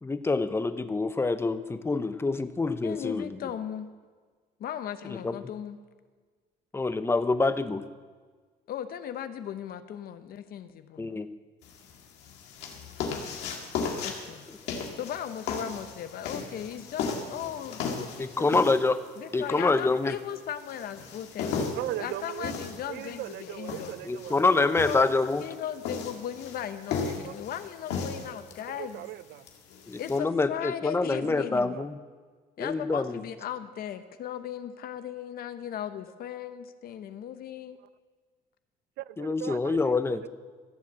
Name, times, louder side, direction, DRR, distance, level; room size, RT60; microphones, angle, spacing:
voice 1, 0.0-3.4 5.0-5.4 6.7-7.8 11.0-11.3 18.2-19.0 19.3-20.2 24.1-25.4 29.9-32.0 32.6-33.2 39.2-40.2, left 3 dB, 15° left, 12 dB, 0.7 m, -26 dB
voice 2, 2.8-3.9 4.6-5.8 8.7-11.1 14.0-14.4 14.9-18.7 19.2-21.6 22.0-23.9 24.5-25.1 25.4-29.1 30.0-31.8 32.6-37.8, left 9 dB, 60° left, 11 dB, 0.9 m, -37 dB
sound 1, 11.6-30.2, left 5 dB, 90° left, 1.9 m, -37 dB
voice 3, 21.6-22.6 22.9-24.4 27.0-27.3 28.3-28.4 28.7-29.5 31.0-31.9 39.0-40.3, right 15 dB, 75° right, 17 dB, 0.5 m, -39 dB
15.5 x 7.3 x 7.4 m, 1.5 s
cardioid pair, 110°, 17 cm